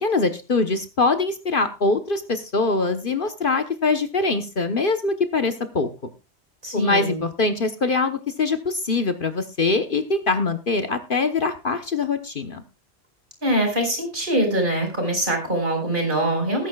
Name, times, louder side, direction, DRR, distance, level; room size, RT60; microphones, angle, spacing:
voice 1, 0.0-5.9 6.7-12.6, left 3 dB, 50° left, 8 dB, 1.2 m, -23 dB
voice 2, 6.6-7.2 13.4-16.7, right 1 dB, 45° right, 3 dB, 5.5 m, -23 dB
20.5 x 9.8 x 2.3 m, 0.29 s
omnidirectional pair, 1.2 m